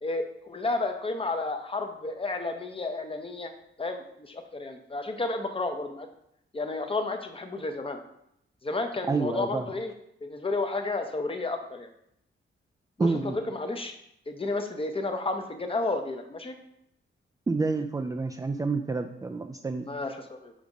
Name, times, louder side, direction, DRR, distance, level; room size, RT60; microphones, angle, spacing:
voice 1, 0.0-3.5 3.8-6.1 6.5-8.0 8.6-9.9 10.2-11.9 13.0-13.9 14.3-16.6 19.8-20.5, left 3 dB, 25° left, 6 dB, 0.8 m, -32 dB
voice 2, 9.1-9.7 13.0-13.4 17.5-19.9, right 3 dB, 15° right, 3 dB, 0.4 m, -28 dB
5.2 x 3.5 x 5.2 m, 0.78 s
cardioid pair, 100°, 21 cm